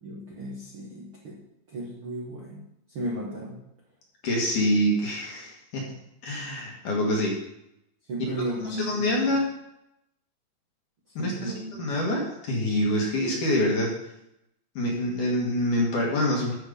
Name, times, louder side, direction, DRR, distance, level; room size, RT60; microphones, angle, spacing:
voice 1, 0.0-1.4 1.7-2.6 2.9-3.6 8.1-9.4 11.1-11.9, right 1 dB, 70° right, -4 dB, 1.2 m, -35 dB
voice 2, 4.2-5.9 6.2-7.4 8.8-9.5 11.2-13.9 14.7-16.5, left 1 dB, 55° left, -2 dB, 2.6 m, -26 dB
13.5 x 5.5 x 5.2 m, 0.82 s
omnidirectional pair, 5.3 m